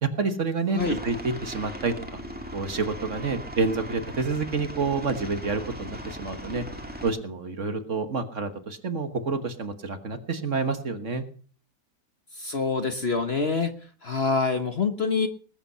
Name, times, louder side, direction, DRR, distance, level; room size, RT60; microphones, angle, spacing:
voice 1, 0.0-2.2 2.5-6.6 7.0-11.2, right 4 dB, 45° right, 9 dB, 1.6 m, -28 dB
Aircraft, 0.8-7.1, equal, 5° right, 2.0 m, -38 dB
voice 2, 12.3-13.7 14.0-15.3, left 4 dB, 40° left, 8 dB, 1.2 m, -26 dB
20.0 x 9.0 x 5.6 m, 0.43 s
omnidirectional pair, 1.9 m